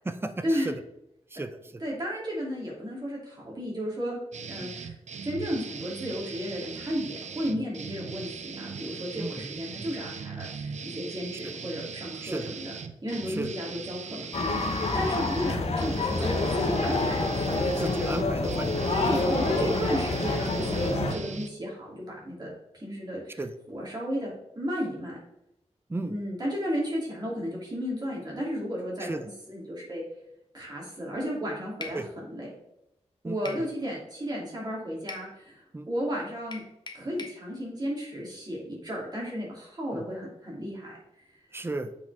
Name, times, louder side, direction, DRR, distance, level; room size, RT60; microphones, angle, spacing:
voice 1, 0.0-0.7 1.3-1.5 4.6-4.8 9.2-9.6 11.4-11.5 12.2-12.5 13.3-13.6 15.0-15.1 17.8-19.1 23.4-23.5 25.9-26.1 29.0-29.2 31.9-32.1 33.2-33.4 35.7-35.9 39.9-40.0 41.5-41.9, right 2 dB, 20° right, 9 dB, 0.5 m, -34 dB
voice 2, 1.8-4.2 4.5-4.9 5.2-12.7 13.0-14.6 14.9-17.7 18.9-23.4 23.7-25.2 26.1-30.0 30.5-32.5 33.2-36.6 36.9-40.9 41.2-41.3, equal, 35° right, -4 dB, 3.0 m, -33 dB
sound 1, 4.3-21.5, right 6 dB, 85° right, 0.5 m, -40 dB
sound 2, 14.3-21.1, left 2 dB, 65° left, 1.2 m, -27 dB
sound 3, 31.8-32.0 33.5-33.7 35.1-35.3 36.5-37.4, left 3 dB, 40° left, 1.0 m, -40 dB
8.3 x 4.9 x 3.5 m, 0.84 s
wide cardioid pair, 95°, 12 cm